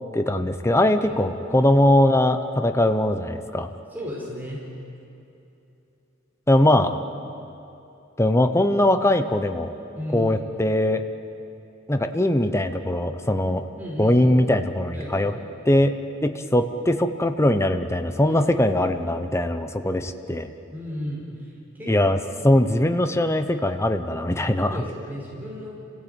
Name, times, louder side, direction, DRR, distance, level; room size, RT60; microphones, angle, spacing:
voice 1, 0.1-3.7 6.5-6.9 8.2-9.7 10.1-11.0 11.9-13.6 14.0-15.3 15.7-15.9 16.2-20.5 21.9-22.2 22.4-24.8, left 1 dB, 15° left, 8 dB, 0.9 m, -21 dB
voice 2, 3.9-4.6 10.0-10.3 13.8-14.3 14.9-15.3 18.2-18.4 20.7-21.2 21.7-21.9 24.7-25.7, equal, 10° right, -5 dB, 4.8 m, -34 dB
28.5 x 16.5 x 9.2 m, 2.8 s
head